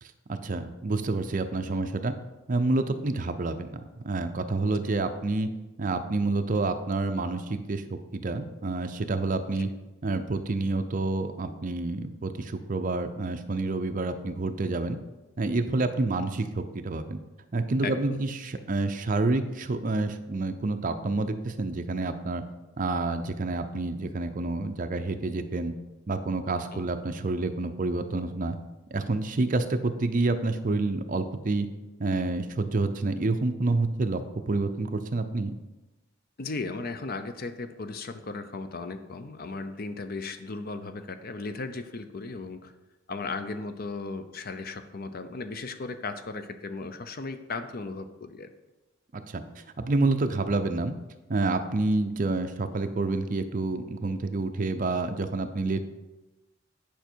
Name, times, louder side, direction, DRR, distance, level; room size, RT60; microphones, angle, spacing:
voice 1, 0.0-2.1 2.5-5.5 5.8-9.7 10.0-15.0 15.4-17.2 17.5-22.4 22.8-25.7 26.1-28.6 28.9-31.7 32.0-34.2 34.5-35.5 49.1-50.9 51.3-55.9, right 2 dB, 45° right, 8 dB, 0.6 m, -28 dB
voice 2, 17.8-18.2 26.7-26.8 36.4-42.7 43.1-48.5, left 3 dB, 50° left, 10 dB, 0.6 m, -36 dB
9.2 x 5.1 x 4.5 m, 1.1 s
head